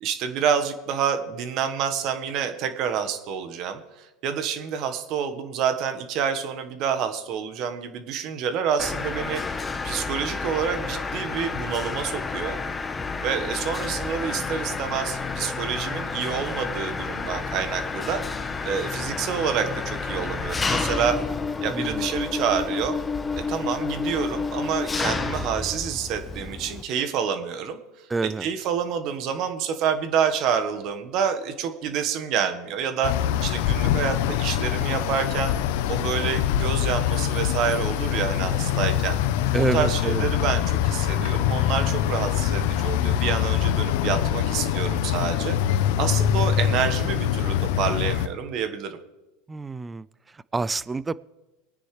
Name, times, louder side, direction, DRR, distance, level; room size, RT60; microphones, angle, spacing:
voice 1, 0.0-12.6 13.2-21.2 21.6-23.0 23.3-27.8 28.4-33.1 33.4-35.5 35.9-39.2 39.7-49.0, right 7 dB, 50° right, 8 dB, 1.4 m, -28 dB
Mechanisms, 8.8-26.8, left 4 dB, 20° left, 0.9 m, -30 dB
voice 2, 21.7-22.1 28.1-28.5 39.5-40.3 49.5-51.1, right 3 dB, 15° right, 20 dB, 0.4 m, -28 dB
sound 1, 33.0-48.3, left 10 dB, 70° left, 0.7 m, -24 dB
22.0 x 9.6 x 3.3 m, 1.1 s
hypercardioid pair, 100°, 0 cm